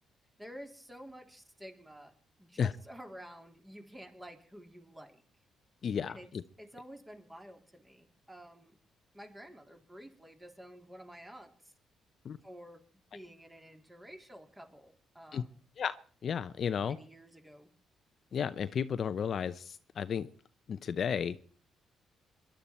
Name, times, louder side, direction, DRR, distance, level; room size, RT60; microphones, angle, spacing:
voice 1, 0.4-2.1 2.4-5.2 6.0-6.3 6.6-8.8 9.1-11.7 12.4-12.8 13.1-15.5 16.8-17.7, equal, 10° right, 5 dB, 3.0 m, -51 dB
voice 2, 5.8-6.4 12.2-12.4 15.3-15.4 15.8-16.0 16.2-17.0 18.3-20.3 20.7-21.4, left 7 dB, 55° left, 13 dB, 0.7 m, -33 dB
22.5 x 11.5 x 4.4 m, 0.41 s
cardioid pair, 90°, 0 cm